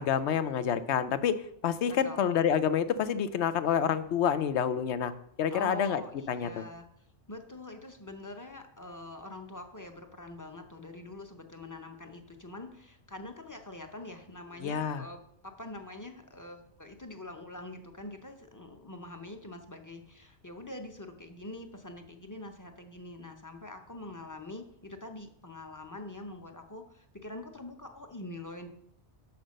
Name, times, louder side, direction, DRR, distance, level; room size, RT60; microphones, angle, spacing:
voice 1, 0.0-5.1 5.4-6.0 6.3-6.6 14.6-15.1, left 8 dB, 80° left, 12 dB, 0.9 m, -28 dB
voice 2, 1.9-2.2 5.5-6.1 6.4-6.8 7.3-28.7, left 2 dB, 20° left, 5 dB, 0.6 m, -44 dB
6.5 x 5.9 x 6.3 m, 0.71 s
omnidirectional pair, 1.1 m